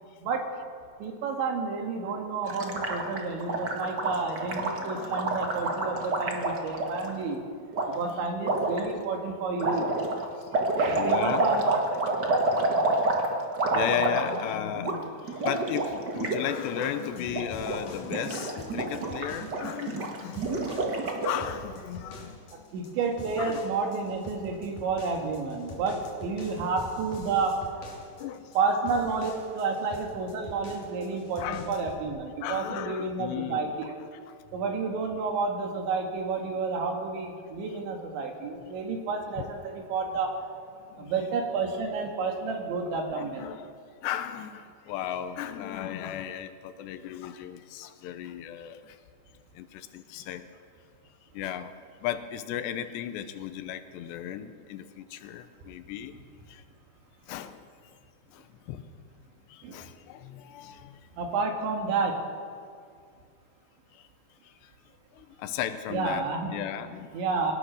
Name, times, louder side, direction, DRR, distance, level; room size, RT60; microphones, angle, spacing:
voice 1, 1.0-7.4 7.9-9.9 10.8-12.2 22.5-27.6 28.6-33.9 34.5-40.3 41.0-43.5 59.6-59.8 61.2-62.2 65.9-66.6 67.1-67.5, right 4 dB, 85° right, 3 dB, 4.4 m, -30 dB
Gurgling, 2.5-7.1 7.7-7.9 8.4-8.8 9.6-14.5 14.8-15.0 15.2-16.4 16.7-16.9 17.2-17.8 18.0-21.5, right 2 dB, 65° right, 1.0 m, -28 dB
voice 2, 4.8-5.5 7.8-8.3 10.9-11.4 13.7-20.5 21.2-22.4 23.4-23.7 28.2-28.4 31.4-31.9 32.4-33.7 41.0-41.1 42.9-43.6 44.0-49.0 49.6-50.5 51.3-51.7 52.0-56.1 56.5-56.6 57.3-57.6 58.3-58.4 58.7-58.8 59.5-61.0 65.2-66.3 66.5-67.1, left 10 dB, 80° left, 10 dB, 2.9 m, -35 dB
sound 1, 16.5-32.1, left 2 dB, 45° left, 4.0 m, -46 dB
21.5 x 18.5 x 6.5 m, 2.2 s
omnidirectional pair, 5.1 m